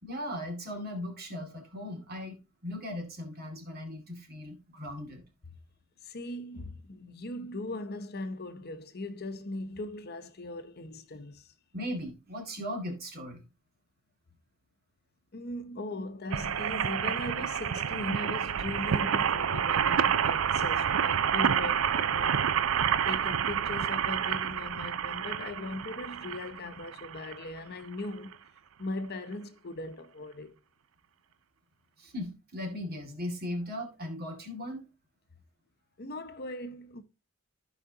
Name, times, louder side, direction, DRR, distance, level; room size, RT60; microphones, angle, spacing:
voice 1, 0.0-2.4 2.6-5.2 11.7-13.4 32.0-34.9, left 1 dB, 45° right, 2.3 m, -38 dB
voice 2, 6.0-11.5 15.3-28.4 28.8-30.6 36.0-37.0, left 2 dB, 50° left, 0.8 m, -39 dB
sound 1, 16.3-27.4 28.0-28.1 28.3-28.4, right 8 dB, 65° right, 0.5 m, -28 dB
14.5 x 5.0 x 2.8 m
head